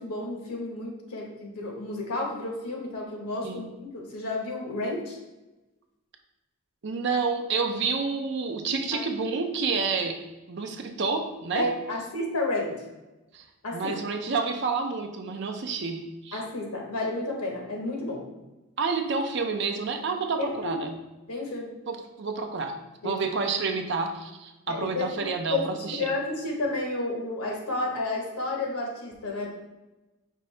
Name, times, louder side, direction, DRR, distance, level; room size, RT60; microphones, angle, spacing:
voice 1, 0.0-3.7 3.9-5.2 8.9-9.0 11.5-12.8 13.6-14.1 16.3-18.2 20.4-20.8 21.3-21.7 23.0-23.2 24.7-25.1 25.5-29.5, left 2 dB, 90° left, 0 dB, 1.1 m, -31 dB
voice 2, 6.8-10.2 10.5-11.7 13.3-13.4 13.7-16.4 18.8-20.9 21.9-22.8 23.0-26.0, right 4 dB, 50° right, 5 dB, 0.5 m, -29 dB
5.2 x 2.7 x 3.2 m, 1.1 s
head